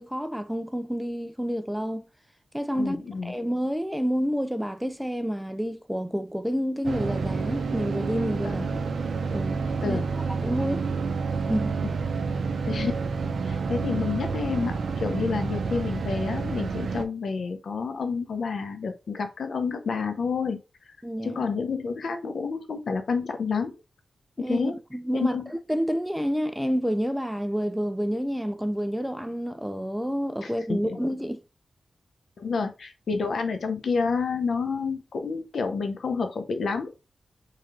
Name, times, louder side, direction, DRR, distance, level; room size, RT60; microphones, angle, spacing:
voice 1, 0.0-2.0 2.5-3.0 3.2-8.6 9.3-9.6 9.8-10.0 10.4-10.9 11.5-11.7 21.0-21.4 24.4-31.4, equal, 5° right, 0.4 m, -29 dB
voice 2, 2.8-3.3 8.4-8.7 9.8-10.1 12.7-12.9 13.2-20.6 21.2-23.7 24.5-24.8 25.1-25.4 30.4-31.0 32.4-36.9, left 5 dB, 80° left, 0.6 m, -29 dB
sound 1, 6.8-17.0, right 4 dB, 80° right, 0.5 m, -29 dB
3.1 x 2.8 x 3.6 m
wide cardioid pair, 75°, 0 cm